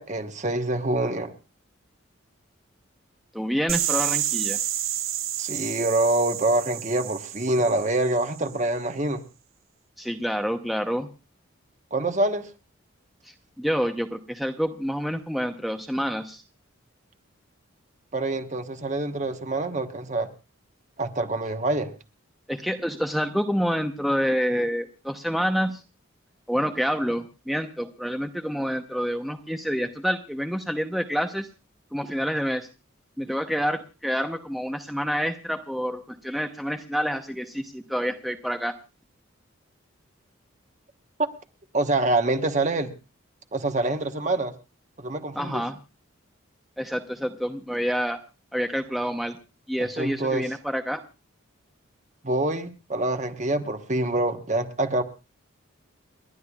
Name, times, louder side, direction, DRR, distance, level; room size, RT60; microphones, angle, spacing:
voice 1, 0.0-1.3 5.4-9.2 11.9-12.5 18.1-20.3 21.0-21.9 41.2-41.3 41.7-42.9 43.5-44.5 45.0-45.6 49.8-50.4 52.2-55.0, right 2 dB, 35° right, 7 dB, 1.2 m, -26 dB
voice 2, 3.3-4.6 10.0-11.1 13.2-16.4 22.5-25.8 26.5-31.5 31.9-32.7 33.2-38.7 45.3-45.8 46.8-48.2 48.5-49.4 49.7-51.0, equal, ahead, 5 dB, 0.8 m, -28 dB
sound 1, 3.7-8.5, right 11 dB, 75° right, 1.4 m, -30 dB
29.5 x 11.5 x 2.4 m, 0.30 s
head